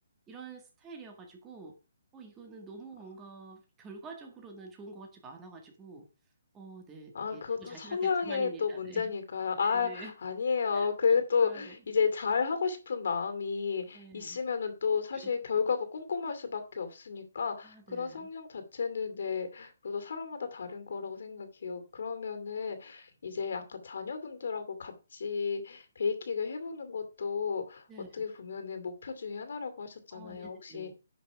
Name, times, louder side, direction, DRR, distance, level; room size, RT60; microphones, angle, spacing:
voice 1, 0.3-1.8 2.1-6.1 6.5-9.1 9.6-10.2 10.7-10.9 11.4-11.8 13.9-14.4 15.1-15.3 17.6-18.3 27.9-28.2 30.1-30.9, right 4 dB, 10° right, 3 dB, 1.8 m, -48 dB
voice 2, 7.1-27.8 28.1-30.9, left 5 dB, 60° left, 8 dB, 2.4 m, -32 dB
11.0 x 5.9 x 4.8 m, 0.31 s
hypercardioid pair, 170°, 0 cm